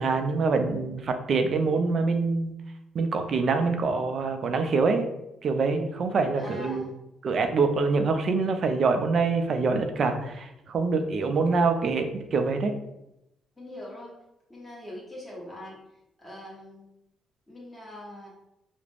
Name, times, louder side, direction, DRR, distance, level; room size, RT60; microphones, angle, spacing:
voice 1, 0.0-2.5 2.9-5.1 5.4-6.8 7.2-12.7, right 4 dB, 55° right, 6 dB, 0.3 m, -25 dB
voice 2, 6.4-6.9 13.6-14.1 14.5-15.8 16.2-16.9 17.5-18.3, left 1 dB, 10° left, -5 dB, 1.0 m, -42 dB
2.4 x 2.1 x 3.2 m, 0.86 s
cardioid pair, 90°, 0 cm